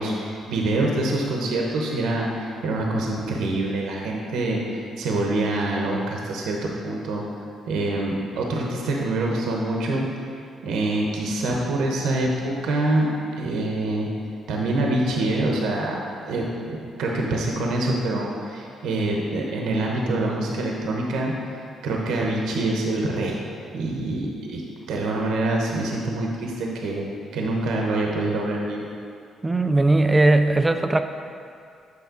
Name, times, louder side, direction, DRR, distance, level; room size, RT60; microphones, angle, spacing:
voice 1, 0.0-4.6 5.0-7.2 7.7-10.1 10.6-13.1 13.4-14.1 14.5-16.0 16.3-21.3 21.8-23.4 23.7-24.6 24.9-27.1 27.3-28.9, right 2 dB, 85° right, -1 dB, 0.9 m, -25 dB
voice 2, 29.4-31.0, right 2 dB, 20° right, 8 dB, 0.4 m, -18 dB
8.1 x 5.6 x 3.8 m, 2.3 s
cardioid pair, 90°, 0 cm